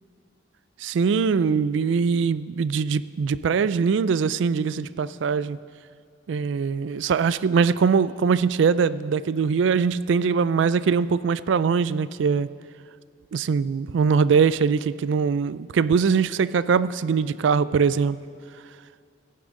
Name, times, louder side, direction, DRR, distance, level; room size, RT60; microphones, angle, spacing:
voice 1, 0.8-5.6 6.3-12.5 13.3-18.2, right 5 dB, 80° right, 16 dB, 0.3 m, -22 dB
15.5 x 10.5 x 3.8 m, 2.3 s
head